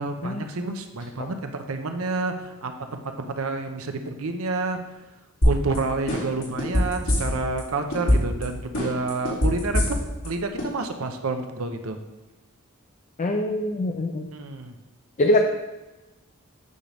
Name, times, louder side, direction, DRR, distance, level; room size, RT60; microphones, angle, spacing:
voice 1, 0.0-4.8 5.4-12.0 14.3-14.8, right 3 dB, 75° right, 6 dB, 0.7 m, -29 dB
sound 1, 5.4-5.8 6.1-7.6 7.9-8.4 8.7-10.3 10.6-10.7, left 1 dB, 90° left, 2.5 m, -21 dB
voice 2, 13.2-14.3 15.2-15.4, left 1 dB, 35° left, 3 dB, 0.4 m, -23 dB
8.6 x 5.1 x 3.4 m, 1.1 s
head